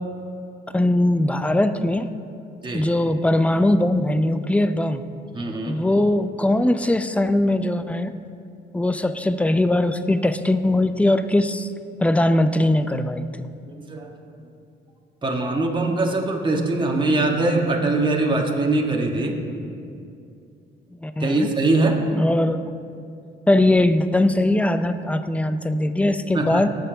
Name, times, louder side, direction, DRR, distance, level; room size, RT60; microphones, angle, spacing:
voice 1, 0.7-2.1 2.7-5.0 5.7-8.1 8.7-11.7 12.0-13.5 21.0-21.5 22.1-22.6 23.5-26.7, left 1 dB, 5° left, 11 dB, 0.5 m, -20 dB
voice 2, 5.3-5.8 13.7-14.1 15.2-19.4 21.2-22.1 26.3-26.6, right 2 dB, 25° right, 0 dB, 1.5 m, -22 dB
18.5 x 6.9 x 3.9 m, 2.5 s
cardioid pair, 90°, 20 cm